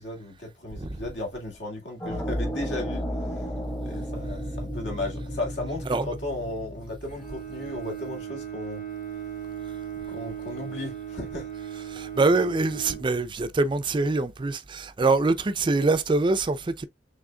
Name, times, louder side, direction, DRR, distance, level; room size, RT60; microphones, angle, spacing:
voice 1, 0.0-3.5 3.8-8.8 10.1-11.5 11.7-11.9, left 2 dB, 70° left, 1.9 m, -35 dB
sound 1, 2.0-7.9, equal, 15° left, 0.9 m, -33 dB
Bowed string instrument, 7.0-13.7, right 9 dB, 40° left, 1.5 m, -37 dB
voice 2, 11.9-16.8, right 3 dB, 25° right, 0.4 m, -24 dB
6.1 x 3.5 x 2.2 m
head